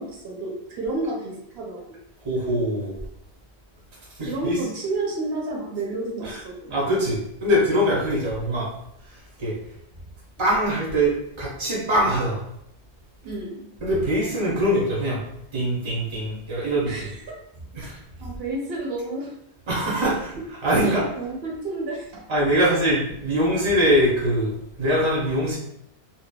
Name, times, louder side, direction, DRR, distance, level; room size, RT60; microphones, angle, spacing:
voice 1, 0.0-2.0 4.2-6.7 13.2-13.7 16.9-17.2 17.8-19.3 19.9-20.1 20.3-20.4 20.8-22.3, right 2 dB, 70° right, -1 dB, 0.8 m, -31 dB
voice 2, 2.2-3.0 4.2-4.6 6.2-6.4 6.7-8.7 9.1-9.5 10.4-12.5 13.8-15.2 15.5-17.1 17.7-17.9 19.7-20.3 20.6-21.1 22.3-25.6, equal, 35° right, -5 dB, 0.5 m, -23 dB
2.7 x 2.1 x 2.2 m, 0.74 s
omnidirectional pair, 1.1 m